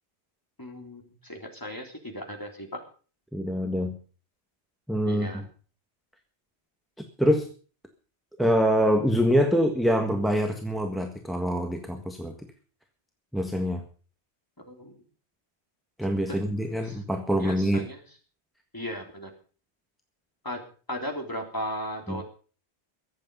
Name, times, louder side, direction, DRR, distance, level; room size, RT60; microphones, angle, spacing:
voice 1, 0.6-2.7 5.1-5.4 14.7-15.0 16.8-17.0 17.4-18.0 18.7-19.3 20.4-20.6 20.9-22.2, equal, 20° left, 2 dB, 3.4 m, -36 dB
voice 2, 3.3-4.0 4.9-5.5 7.2-7.5 8.4-12.3 13.3-13.8 16.0-17.9 22.1-22.2, equal, ahead, 4 dB, 1.6 m, -25 dB
22.5 x 8.7 x 5.5 m, 0.40 s
omnidirectional pair, 1.1 m